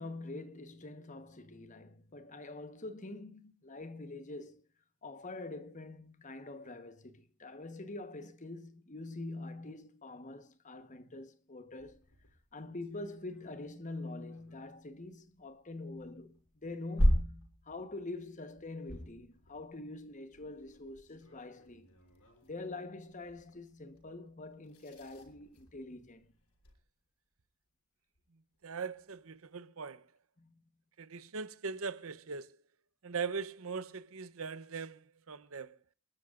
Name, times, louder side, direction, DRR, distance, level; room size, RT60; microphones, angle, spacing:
voice 1, 0.0-4.6 5.0-12.0 12.5-21.9 22.5-26.2 30.4-30.6, left 2 dB, 35° left, 1.2 m, -45 dB
sound 1, 11.8-26.8 28.1-28.2 28.5-28.6 28.9-29.6, equal, 90° left, 6.6 m, -39 dB
voice 2, 28.6-30.1 31.0-32.5 33.0-35.8, right 5 dB, 70° right, 0.8 m, -40 dB
28.5 x 12.5 x 2.5 m
head